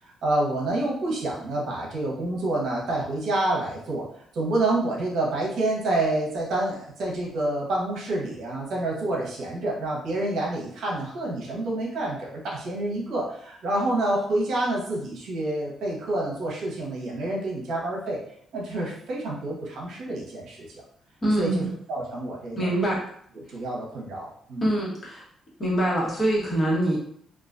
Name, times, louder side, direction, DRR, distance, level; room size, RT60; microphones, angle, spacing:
voice 1, 0.2-4.0 4.3-18.2 18.5-20.8 21.4-21.6 21.9-22.7 23.5-24.6, right 2 dB, 75° right, -3 dB, 0.8 m, -28 dB
voice 2, 21.2-21.7 22.5-23.0 23.5-23.6 24.6-25.3 25.6-27.0, right 1 dB, 30° left, -6 dB, 1.1 m, -24 dB
2.3 x 2.2 x 2.4 m, 0.65 s
cardioid pair, 90°, 0 cm